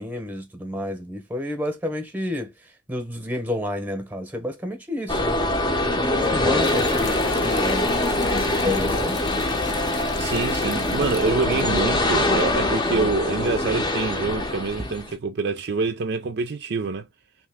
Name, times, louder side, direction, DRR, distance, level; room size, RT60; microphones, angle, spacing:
voice 1, 0.0-2.5 2.9-5.4 5.8-7.9 8.3-9.2, left 1 dB, 10° right, 0.9 m, -30 dB
sound 1, 5.1-15.1, left 2 dB, 25° left, 0.7 m, -23 dB
sound 2, 6.6-11.8, left 4 dB, 65° left, 0.7 m, -38 dB
voice 2, 10.2-17.1, right 4 dB, 55° right, 0.4 m, -26 dB
3.2 x 2.9 x 3.4 m
head